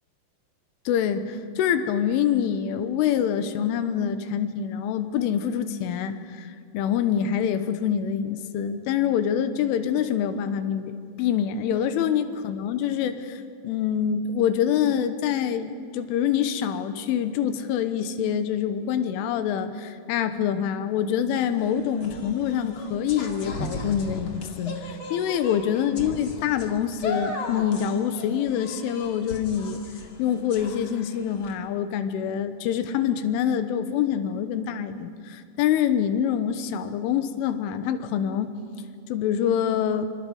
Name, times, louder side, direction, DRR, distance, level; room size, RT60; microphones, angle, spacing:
voice 1, 0.9-10.9 11.2-29.8 30.2-38.5 39.1-40.1, left 9 dB, 85° left, 9 dB, 3.5 m, -25 dB
sound 1, 21.4-31.5, left 2 dB, 40° left, 1.9 m, -37 dB
26.5 x 26.0 x 5.4 m, 2.2 s
omnidirectional pair, 5.7 m